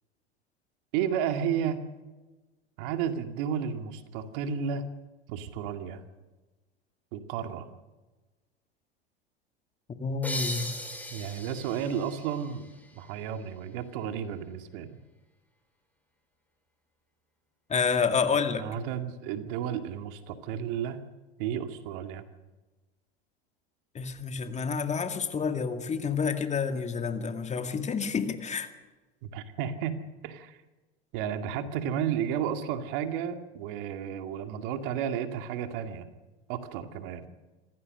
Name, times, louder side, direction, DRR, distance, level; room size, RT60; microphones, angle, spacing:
voice 1, 0.9-1.8 2.8-4.8 5.3-6.0 7.1-7.7 11.1-14.9 18.6-21.0 21.4-22.2 29.2-30.0 30.2-30.6 31.1-36.1 36.5-37.3, right 8 dB, 60° right, 7 dB, 2.3 m, -32 dB
voice 2, 10.0-10.7 17.7-18.7 23.9-28.7, left 5 dB, 20° left, 7 dB, 2.2 m, -29 dB
sound 1, 10.2-13.6, left 1 dB, 5° left, 4.5 m, -39 dB
26.5 x 16.0 x 6.6 m, 1.2 s
hypercardioid pair, 90°, 31 cm